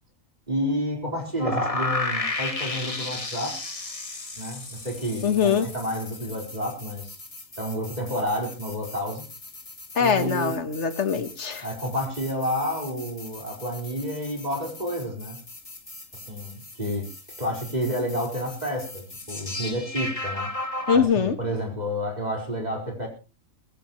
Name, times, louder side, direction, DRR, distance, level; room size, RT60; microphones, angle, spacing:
voice 1, 0.5-3.6 4.4-7.2 7.6-9.3 10.0-10.6 11.6-15.4 16.1-17.1 17.4-20.5 20.9-23.1, equal, 30° right, 1 dB, 4.6 m, -30 dB
sound 1, 1.4-21.0, left 2 dB, 25° left, 1.5 m, -35 dB
voice 2, 5.2-5.7 9.9-11.7 20.9-21.4, left 6 dB, 60° left, 11 dB, 1.6 m, -23 dB
21.5 x 14.5 x 3.1 m, 0.31 s
omnidirectional pair, 1.4 m